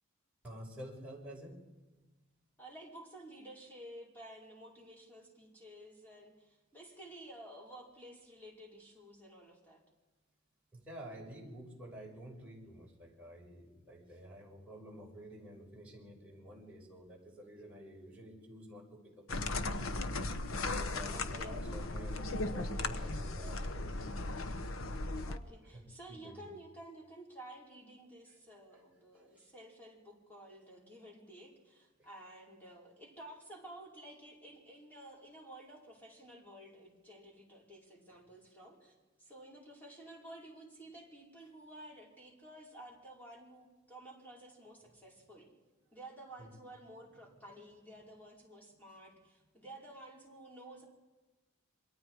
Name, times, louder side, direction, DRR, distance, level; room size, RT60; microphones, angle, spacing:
voice 1, 0.4-1.6 10.7-19.9 20.7-23.9 25.7-26.5 28.3-28.4 29.3-29.5 32.0-32.1 38.1-38.2 46.4-46.5, equal, 5° right, -4 dB, 5.8 m, -50 dB
voice 2, 2.6-9.8 21.1-21.6 25.3-45.5 45.9-50.9, right 1 dB, 10° left, -3 dB, 5.3 m, -53 dB
sound 1, 19.3-25.4, left 2 dB, 85° left, 1.1 m, -37 dB
27.5 x 23.5 x 4.9 m, 1.2 s
head